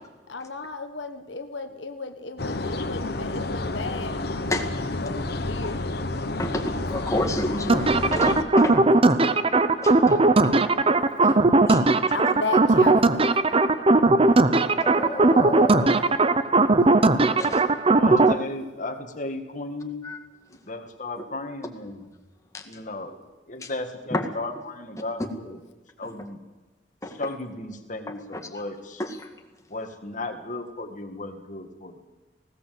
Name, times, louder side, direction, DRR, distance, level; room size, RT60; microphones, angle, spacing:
voice 1, 0.3-4.2 5.0-5.8 12.1-13.1, left 3 dB, 80° left, 7 dB, 1.3 m, -34 dB
sound 1, 2.4-8.4, left 2 dB, 60° left, 1.3 m, -30 dB
voice 2, 6.4-8.8 9.8-10.9 11.3-11.4 11.7-11.8 14.7-16.1 17.4-17.6 18.1-18.2 20.0-20.2 22.5-22.6 23.6-23.7 24.1-24.2 27.0-27.2 29.0-29.3, left 1 dB, 15° left, 3 dB, 1.8 m, -30 dB
sound 2, 7.7-18.3, right 2 dB, 30° right, 0.7 m, -19 dB
voice 3, 18.0-20.0 20.5-22.1 22.6-23.2 23.5-25.6 26.0-26.4 27.0-29.0 29.7-32.0, left 2 dB, 45° left, 6 dB, 2.1 m, -35 dB
19.5 x 17.0 x 7.8 m, 1.2 s
head